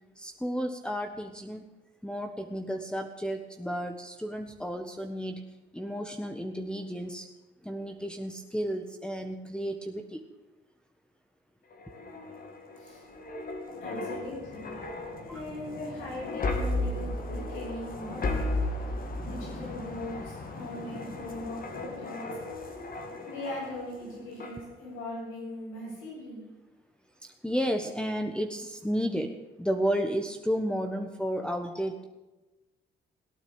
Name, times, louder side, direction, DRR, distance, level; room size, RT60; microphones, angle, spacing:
voice 1, 0.2-1.6 2.0-5.4 5.7-7.3 7.6-10.2 15.3-15.4 22.7-23.2 27.2-29.3 29.6-32.0, equal, 5° left, 6 dB, 1.4 m, -32 dB
sound 1, 11.7-24.0 24.4-24.6, left 2 dB, 45° left, 2.9 m, -35 dB
voice 2, 13.8-14.7 15.2-18.4 19.2-22.3 23.2-26.4, left 1 dB, 85° left, -5 dB, 7.7 m, -39 dB
17.5 x 9.2 x 8.8 m, 1.1 s
cardioid pair, 90°, 20 cm